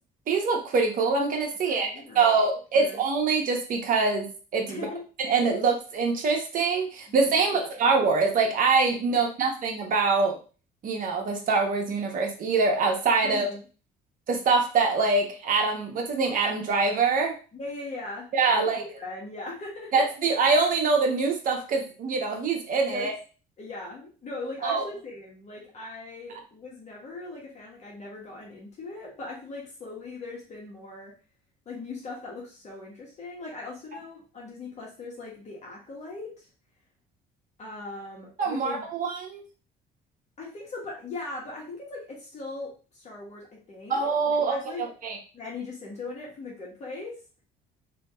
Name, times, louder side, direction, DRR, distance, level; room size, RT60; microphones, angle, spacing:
voice 1, 0.3-4.9 5.2-10.4 10.8-13.5 14.3-17.3 18.3-18.8 19.9-23.1 24.6-24.8 38.4-39.4 43.9-45.2, right 4 dB, 55° right, 2 dB, 1.0 m, -24 dB
voice 2, 1.6-2.3 2.7-3.0 4.7-5.0 7.4-7.7 9.1-9.2 13.3-13.6 17.5-20.0 22.9-23.1 23.6-31.1 31.7-36.5 37.6-38.9 40.4-44.8 45.3-47.2, left 3 dB, 40° left, -2 dB, 1.2 m, -40 dB
2.8 x 2.8 x 3.5 m, 0.36 s
cardioid pair, 110°, 17 cm